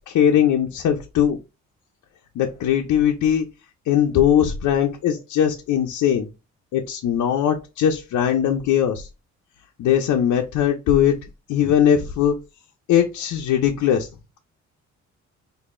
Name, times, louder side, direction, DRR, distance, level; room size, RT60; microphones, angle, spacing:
voice 1, 0.1-1.4 2.4-3.5 3.9-6.3 6.7-9.1 9.8-11.1 11.5-12.3 12.9-14.1, left 9 dB, 75° left, 3 dB, 0.6 m, -20 dB
4.7 x 2.7 x 2.5 m, 0.27 s
cardioid pair, 90°, 30 cm